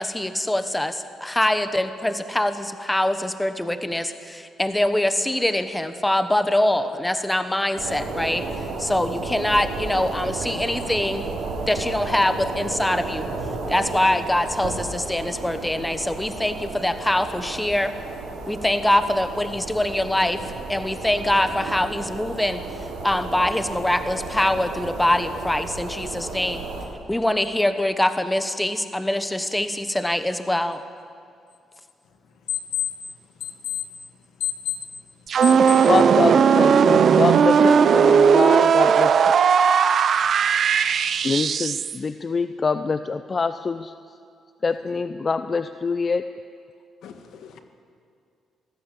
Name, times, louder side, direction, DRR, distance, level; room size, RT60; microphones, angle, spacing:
voice 1, 0.0-8.4 8.8-11.3 11.7-13.3 13.7-17.9 18.5-20.4 20.7-22.6 23.0-26.7 27.1-30.8, left 1 dB, 10° left, 10 dB, 1.2 m, -23 dB
sound 1, 7.8-26.9, right 3 dB, 90° right, 4.3 m, -33 dB
voice 2, 34.4-34.9 35.4-35.8 47.0-47.6, left 11 dB, 75° left, 6 dB, 1.9 m, -31 dB
sound 2, 35.3-42.0, right 7 dB, 55° right, 0.8 m, -17 dB
voice 3, 35.9-39.2 41.2-43.9 44.6-46.2, left 4 dB, 35° left, 10 dB, 0.6 m, -25 dB
23.0 x 15.5 x 8.4 m, 2.4 s
cardioid pair, 90°, 0 cm